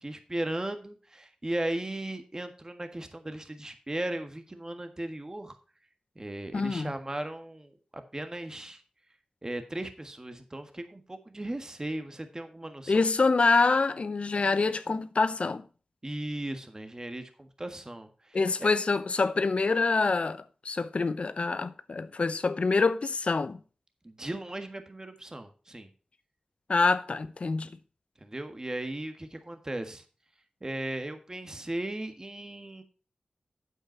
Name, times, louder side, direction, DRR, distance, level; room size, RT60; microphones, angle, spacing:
voice 1, 0.0-5.6 6.1-8.8 9.4-13.0 16.0-18.7 24.0-25.9 28.2-30.0 30.6-32.8, right 1 dB, 30° right, 1.5 m, -37 dB
voice 2, 6.5-6.9 12.9-15.6 18.3-23.6 26.7-27.7, left 4 dB, 60° left, 0.7 m, -26 dB
8.7 x 8.0 x 4.4 m
wide cardioid pair, 55°, 2 cm